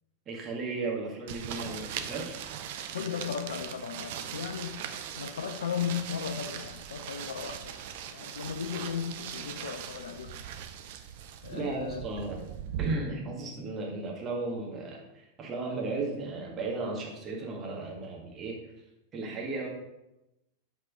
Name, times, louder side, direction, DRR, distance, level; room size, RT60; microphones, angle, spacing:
voice 1, 0.3-2.4 11.5-12.5 12.8-18.6 19.1-19.7, right 3 dB, 25° right, 1.8 m, -35 dB
sound 1, 1.3-12.9, right 9 dB, 50° right, 0.6 m, -40 dB
voice 2, 2.9-4.8 5.2-7.8 8.1-10.4 11.4-12.0, left 7 dB, 65° left, 0.4 m, -36 dB
8.1 x 4.3 x 4.8 m
figure-of-eight pair, 90°, 0 cm